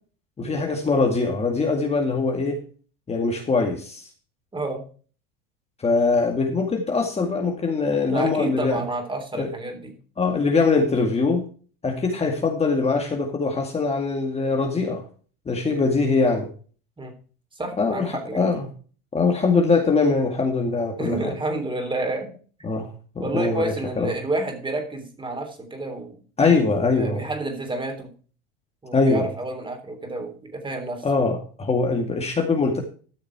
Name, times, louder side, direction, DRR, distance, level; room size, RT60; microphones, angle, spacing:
voice 1, 0.4-2.6 3.1-4.1 5.8-8.8 9.4-9.5 10.2-11.4 11.8-15.0 15.5-16.5 17.8-18.6 19.1-21.3 22.6-22.9 23.2-24.1 26.4-27.2 28.9-29.3 31.0-32.8, left 4 dB, 20° left, 2 dB, 2.1 m, -22 dB
voice 2, 4.5-4.8 8.1-9.9 15.6-15.8 17.0-17.1 17.5-18.4 21.0-22.3 23.2-26.1 27.0-28.1 28.8-31.0, right 2 dB, 15° right, 6 dB, 3.4 m, -30 dB
13.0 x 6.5 x 4.7 m, 0.40 s
supercardioid pair, 100°, 29 cm